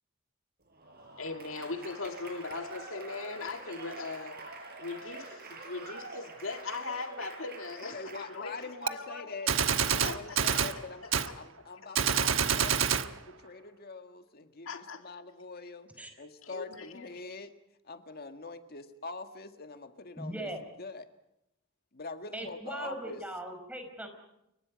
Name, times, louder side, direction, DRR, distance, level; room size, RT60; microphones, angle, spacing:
Applause / Crowd, 0.7-8.9, right 3 dB, 50° right, 6.2 m, -46 dB
voice 1, 1.2-4.4 4.8-9.4 10.0-10.6 11.0-11.3 12.6-12.7 14.7-15.0 16.4-17.1, left 3 dB, 80° left, 6 dB, 2.0 m, -40 dB
voice 2, 7.9-9.5 9.9-17.5 17.8-20.5 20.8-21.1 21.9-23.2, left 3 dB, 50° left, 8 dB, 1.7 m, -44 dB
Gunshot gunfire, 8.9-9.0 9.5-10.8 11.1-11.3 11.9-13.1, right 7 dB, 75° right, 1.2 m, -27 dB
voice 3, 20.2-20.6 22.3-24.1, right 1 dB, 5° right, 5 dB, 5.1 m, -39 dB
30.0 x 23.5 x 5.2 m, 0.83 s
head